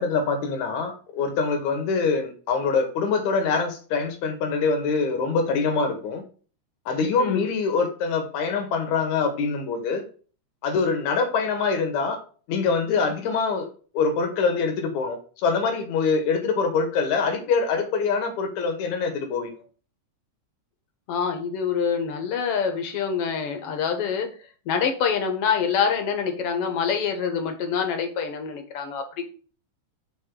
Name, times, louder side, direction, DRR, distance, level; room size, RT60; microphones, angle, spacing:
voice 1, 0.0-6.2 6.9-10.1 10.6-12.2 12.5-13.7 13.9-19.5, left 4 dB, 80° left, 5 dB, 2.5 m, -24 dB
voice 2, 21.1-24.3 24.7-29.3, left 6 dB, 60° left, 5 dB, 1.8 m, -26 dB
8.2 x 3.7 x 3.7 m, 0.40 s
omnidirectional pair, 3.3 m